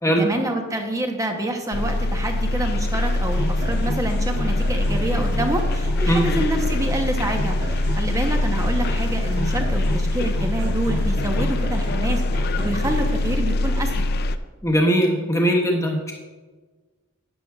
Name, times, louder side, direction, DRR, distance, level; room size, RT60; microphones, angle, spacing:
voice 1, 0.2-12.2 12.6-14.1, right 1 dB, 15° right, 4 dB, 0.9 m, -27 dB
sound 1, 1.7-14.4, left 1 dB, 45° left, 0.4 m, -23 dB
sound 2, 3.0-13.3, equal, 65° right, 2.3 m, -33 dB
voice 2, 14.6-16.1, equal, 15° left, -1 dB, 1.3 m, -20 dB
12.5 x 9.4 x 2.4 m, 1.3 s
head